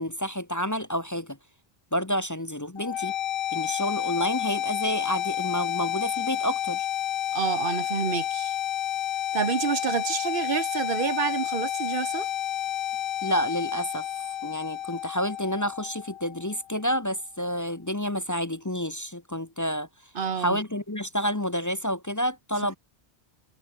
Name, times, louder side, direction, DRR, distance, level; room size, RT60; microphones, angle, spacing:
voice 1, 0.0-1.4 1.9-3.1 3.5-6.9 13.2-14.1 14.4-19.9 20.4-22.8, equal, 20° left, 0.9 m, -29 dB
sound 1, 2.8-16.7, left 12 dB, 65° left, 0.7 m, -30 dB
voice 2, 7.3-8.6 9.3-12.3 20.1-20.6, right 6 dB, 60° right, 1.1 m, -28 dB
omnidirectional pair, 1.0 m